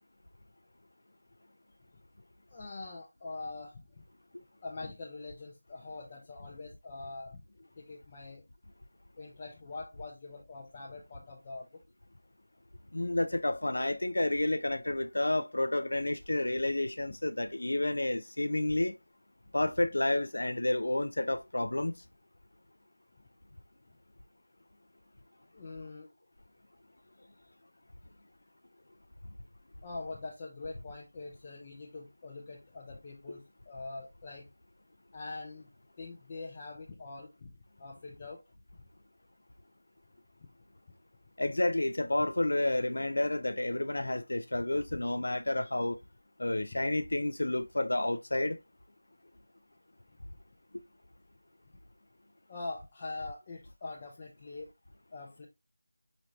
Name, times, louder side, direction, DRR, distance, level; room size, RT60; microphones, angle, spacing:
voice 1, 2.5-3.8 4.6-7.4 7.8-8.4 9.2-11.8 25.5-26.1 29.8-34.5 35.1-35.7 36.0-38.4 52.5-54.7 55.1-55.5, left 3 dB, 20° left, 0.5 m, -43 dB
voice 2, 12.9-19.0 19.5-21.9 41.4-46.0 46.4-48.6, left 1 dB, 80° left, 0.4 m, -30 dB
5.0 x 2.8 x 3.1 m
figure-of-eight pair, 175°, 0 cm